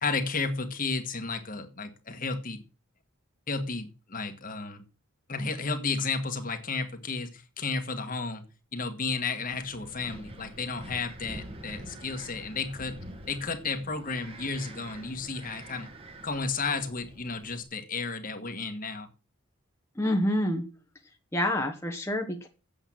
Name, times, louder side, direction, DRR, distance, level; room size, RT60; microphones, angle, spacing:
voice 1, 0.0-2.6 3.5-4.8 5.3-8.4 8.7-13.0 13.3-15.9 16.2-19.1, left 4 dB, 40° left, 1.6 m, -33 dB
Wind, 9.5-17.6, right 1 dB, 25° right, 1.7 m, -46 dB
voice 2, 19.9-20.7 21.3-22.5, left 1 dB, 10° left, 1.2 m, -27 dB
8.4 x 7.8 x 7.6 m
head